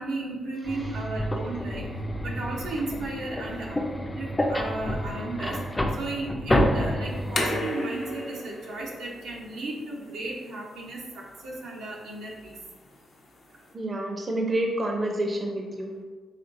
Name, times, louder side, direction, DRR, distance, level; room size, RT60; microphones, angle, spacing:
voice 1, 0.0-1.9 2.2-3.8 4.1-5.6 6.0-12.6, right 2 dB, 90° right, -4 dB, 0.8 m, -34 dB
sound 1, 0.7-7.6, left 1 dB, 20° left, 0.4 m, -29 dB
sound 2, 7.1-13.7, left 1 dB, 60° left, 0.7 m, -37 dB
voice 2, 13.7-15.9, right 1 dB, 35° right, 1 dB, 0.6 m, -28 dB
4.2 x 3.0 x 2.5 m, 1.4 s
cardioid pair, 70°, 0 cm